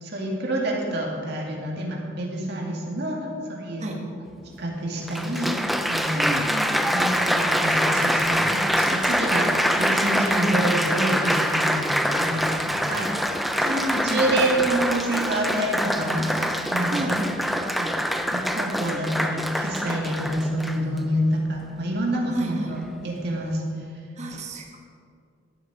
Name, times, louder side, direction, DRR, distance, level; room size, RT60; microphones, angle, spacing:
voice 1, 0.0-3.2 3.5-3.9 4.6-5.6 5.9-6.4 6.7-11.9 12.2-13.1 13.6-17.2 17.4-18.0 18.3-23.6, right 1 dB, 50° right, -1 dB, 2.1 m, -27 dB
Applause, 4.3-4.4 5.1-21.0 21.7-22.1, equal, ahead, 0.4 m, -24 dB
voice 2, 6.1-6.9 13.6-14.5 16.9-17.3 22.3-22.8 24.2-24.8, right 1 dB, 35° right, 0 dB, 1.4 m, -31 dB
12.0 x 11.0 x 4.8 m, 2.3 s
head